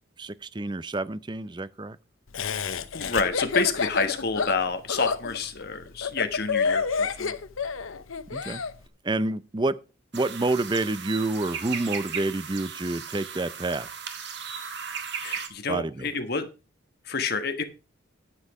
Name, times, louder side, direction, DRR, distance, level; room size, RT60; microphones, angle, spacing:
voice 1, 0.2-2.0 8.3-8.6 9.0-9.7 10.1-13.9 15.7-16.1, right 2 dB, 20° right, 0.5 m, -28 dB
Laughter, 2.3-8.7, left 5 dB, 80° left, 0.8 m, -28 dB
voice 2, 2.9-7.3 15.2-16.5 17.0-17.6, left 4 dB, 50° left, 1.3 m, -28 dB
sound 1, 10.1-15.5, right 7 dB, 55° right, 1.5 m, -36 dB
9.9 x 7.7 x 4.8 m
head